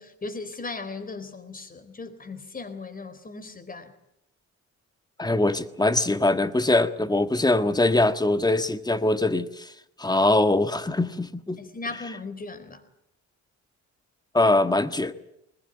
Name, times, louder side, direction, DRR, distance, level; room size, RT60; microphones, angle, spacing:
voice 1, 0.0-3.9 11.6-12.8, left 3 dB, 30° left, 4.1 m, -37 dB
voice 2, 5.2-9.7 10.0-11.6 14.3-15.1, left 2 dB, 15° left, 1.5 m, -22 dB
21.0 x 20.5 x 9.1 m
cardioid pair, 90°, 30 cm